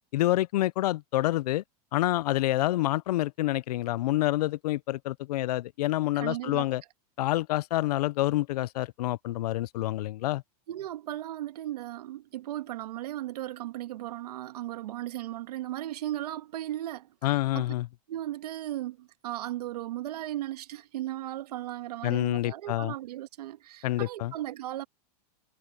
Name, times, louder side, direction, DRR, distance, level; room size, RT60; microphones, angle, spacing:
voice 1, 0.1-1.6 1.9-6.8 7.2-10.4 17.2-17.9 22.0-22.9 23.8-24.3, left 16 dB, 80° left, 0.5 m, -27 dB
voice 2, 6.2-6.7 10.7-17.1 17.5-17.7 18.1-24.8, right 14 dB, 80° right, 1.8 m, -36 dB
supercardioid pair, 140°, 20 cm